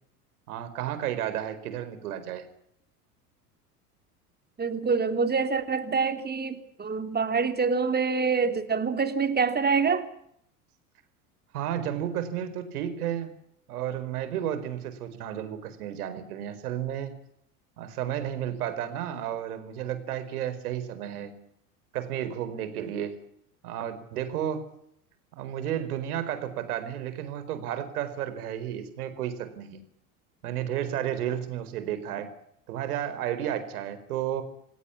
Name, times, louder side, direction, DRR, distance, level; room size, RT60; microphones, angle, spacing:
voice 1, 0.5-2.5 11.5-13.3 13.7-17.1 17.8-21.4 21.9-23.2 23.6-24.7 25.4-29.8 30.4-32.3 32.7-34.4, right 10 dB, 70° right, 11 dB, 4.7 m, -32 dB
voice 2, 4.6-10.1, right 5 dB, 20° right, 9 dB, 3.1 m, -26 dB
27.5 x 17.5 x 8.4 m, 0.73 s
hypercardioid pair, 80°, 46 cm